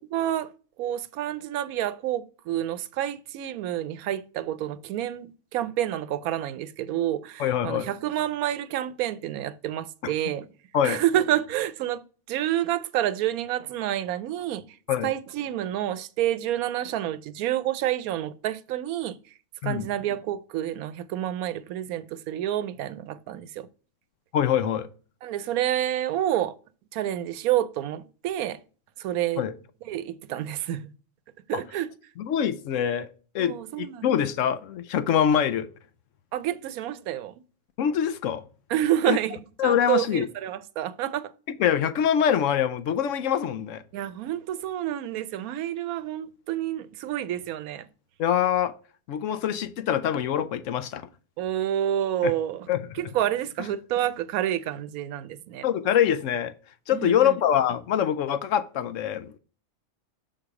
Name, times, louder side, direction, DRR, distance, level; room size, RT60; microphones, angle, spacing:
voice 1, 0.1-0.5 0.8-10.5 10.8-12.0 12.3-14.6 15.0-19.2 19.6-23.7 25.2-26.5 26.9-28.6 29.0-29.5 29.9-30.9 31.5-31.9 33.4-34.1 36.3-37.3 38.7-41.3 43.9-47.9 51.4-52.7 52.9-55.7 56.9-57.3, right 12 dB, 90° right, 1.1 m, -28 dB
voice 2, 7.4-7.9 10.0-10.1 10.7-11.0 14.9-15.1 19.6-19.9 24.3-24.9 29.4-29.5 31.5-31.6 32.2-33.1 33.3-35.7 37.8-38.4 39.1-39.2 39.6-40.3 41.6-43.8 48.2-48.7 49.1-51.1 52.2-52.3 52.7-52.8 55.6-56.5 56.9-59.4, left 9 dB, 70° left, 0.9 m, -24 dB
6.6 x 3.9 x 4.8 m
omnidirectional pair, 1.5 m